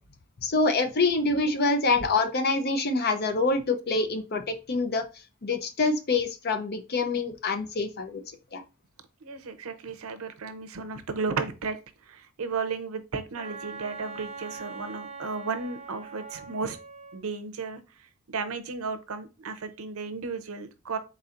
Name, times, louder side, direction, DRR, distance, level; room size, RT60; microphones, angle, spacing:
voice 1, 0.4-5.0 5.4-8.6, left 3 dB, 50° left, 8 dB, 0.6 m, -26 dB
voice 2, 9.2-11.8 12.1-16.8 17.1-17.8 18.3-21.0, right 4 dB, 85° right, 10 dB, 0.6 m, -34 dB
Wind instrument woodwind instrument, 13.4-17.2, right 4 dB, 30° right, 0.6 m, -42 dB
4.2 x 3.9 x 2.5 m, 0.30 s
head